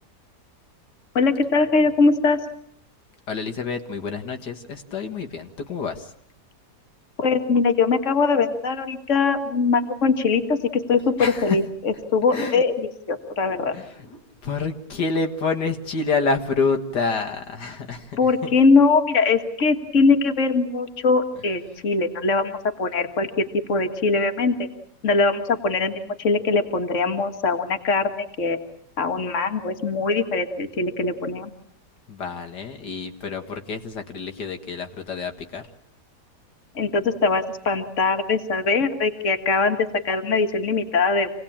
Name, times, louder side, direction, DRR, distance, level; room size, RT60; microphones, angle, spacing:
voice 1, 1.2-2.4 7.2-13.7 18.2-24.7 25.0-28.6 29.0-31.5 36.8-41.3, left 4 dB, 45° left, 7 dB, 2.1 m, -21 dB
voice 2, 3.3-6.1 11.2-11.6 12.3-12.6 13.5-18.2 32.1-35.6, left 4 dB, 75° left, 5 dB, 2.2 m, -28 dB
27.5 x 19.0 x 8.7 m, 0.68 s
omnidirectional pair, 1.8 m